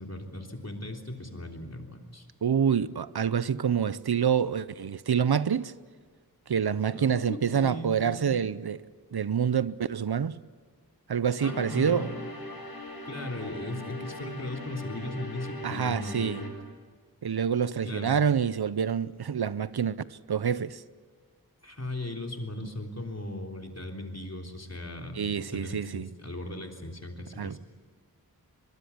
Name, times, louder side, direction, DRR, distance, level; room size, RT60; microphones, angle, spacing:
voice 1, 0.0-2.3 6.9-8.3 11.4-12.1 13.1-16.5 17.8-18.1 21.6-27.6, left 1 dB, 45° left, 3.6 m, -38 dB
voice 2, 2.4-5.7 6.5-8.9 9.1-10.4 11.1-12.1 15.6-16.4 17.2-20.8 25.2-26.1 27.4-27.6, right 7 dB, 85° right, 0.7 m, -27 dB
sound 1, 11.4-16.5, left 1 dB, 75° left, 7.4 m, -40 dB
23.5 x 23.5 x 8.5 m
wide cardioid pair, 45°, 37 cm